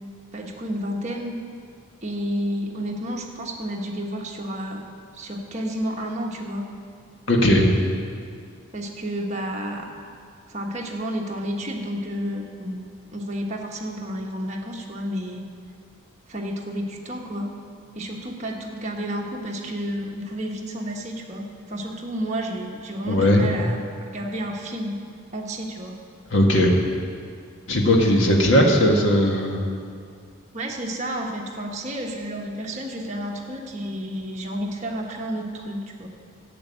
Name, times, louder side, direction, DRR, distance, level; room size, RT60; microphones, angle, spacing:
voice 1, 0.3-1.4 2.0-4.8 5.1-6.7 8.7-9.9 10.5-12.8 13.1-15.4 16.3-17.5 17.9-25.0 25.3-26.0 30.5-36.1, equal, 35° right, 0 dB, 1.3 m, -31 dB
voice 2, 7.3-7.7 23.1-23.5 26.3-26.8 27.7-29.6, left 1 dB, 60° left, 0 dB, 1.7 m, -18 dB
11.0 x 7.8 x 8.6 m, 2.2 s
head